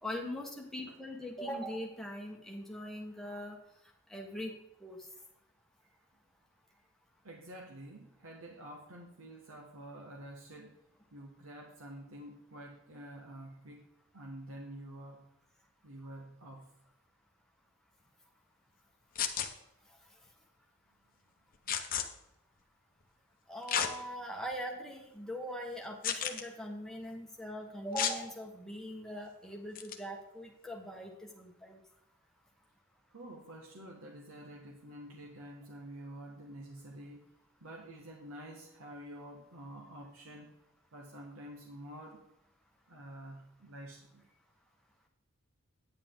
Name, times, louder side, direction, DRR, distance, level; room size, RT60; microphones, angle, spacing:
voice 1, 0.0-3.6 4.1-5.0 23.5-31.8, equal, ahead, 0 dB, 1.3 m, -41 dB
voice 2, 7.2-10.7 11.1-13.9 14.1-15.3 15.8-16.8 33.1-37.3 37.6-40.5 40.9-42.2 42.9-44.4, right 1 dB, 80° right, 1 dB, 1.3 m, -48 dB
sound 1, 19.2-19.5 21.7-22.0 23.7-23.9 24.5-24.6 26.0-26.4 28.0-28.2 29.8-30.0, left 8 dB, 40° left, 0.8 m, -32 dB
9.4 x 8.8 x 3.7 m, 0.83 s
head